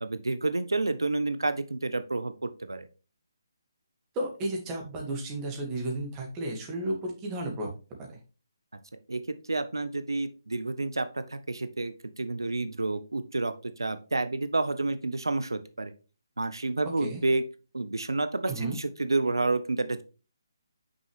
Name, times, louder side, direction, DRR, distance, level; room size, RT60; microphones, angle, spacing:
voice 1, 0.0-2.3 2.6-2.9 9.1-9.2 9.5-15.9 16.4-17.4 17.7-20.0, right 2 dB, 85° right, 11 dB, 0.6 m, -29 dB
voice 2, 4.2-7.7 8.0-8.1 17.0-17.2 18.5-18.8, right 1 dB, 20° right, 0 dB, 1.8 m, -33 dB
6.1 x 5.3 x 3.2 m, 0.33 s
figure-of-eight pair, 150°, 2 cm